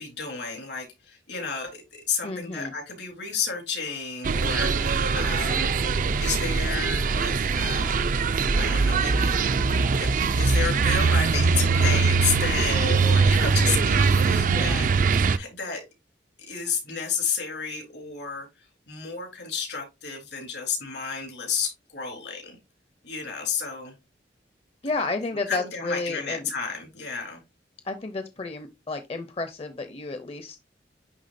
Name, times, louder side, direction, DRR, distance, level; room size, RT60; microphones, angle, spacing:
voice 1, 0.0-5.8 6.2-8.0 8.6-9.6 9.9-15.8 16.4-18.5 18.9-22.6 23.0-24.0 25.5-27.4, left 5 dB, 85° left, 3.6 m, -32 dB
voice 2, 2.2-2.7 14.4-14.9 24.8-26.5 27.8-30.6, left 3 dB, 35° left, 0.6 m, -32 dB
sound 1, 4.2-15.4, right 4 dB, 50° right, 0.4 m, -22 dB
10.5 x 3.5 x 2.6 m
head